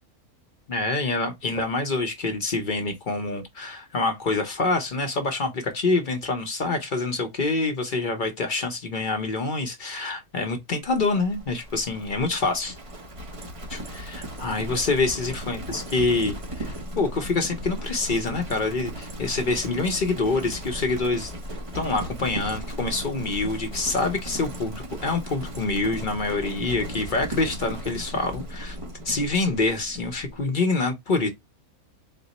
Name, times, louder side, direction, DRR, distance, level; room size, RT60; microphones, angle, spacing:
voice 1, 0.7-12.7 13.7-21.3 21.7-28.8 29.0-31.3, left 3 dB, 50° left, 0.6 m, -26 dB
Livestock farm animals working animals, 10.9-30.5, equal, 35° right, 0.5 m, -36 dB
4.3 x 2.0 x 3.9 m
omnidirectional pair, 1.6 m